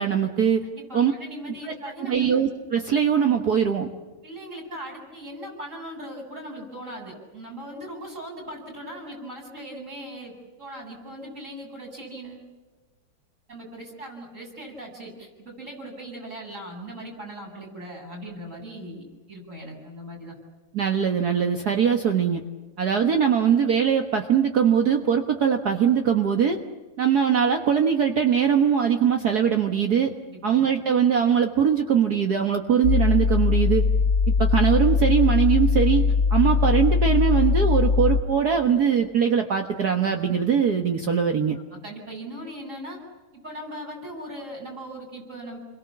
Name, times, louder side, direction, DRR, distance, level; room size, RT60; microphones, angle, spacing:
voice 1, 0.0-0.7 0.9-1.1 1.6-1.7 2.1-3.9 20.7-22.4 22.8-26.6 27.0-30.1 30.4-33.9 34.4-41.6, right 7 dB, 50° right, 4 dB, 1.8 m, -21 dB
voice 2, 0.7-2.3 4.2-12.5 13.5-20.3 30.3-30.7 41.5-43.0 43.3-45.6, right 1 dB, 35° right, 0 dB, 8.3 m, -39 dB
sound 1, 32.8-38.2, left 5 dB, 55° left, 2.3 m, -21 dB
29.5 x 23.0 x 7.4 m, 1.3 s
omnidirectional pair, 2.2 m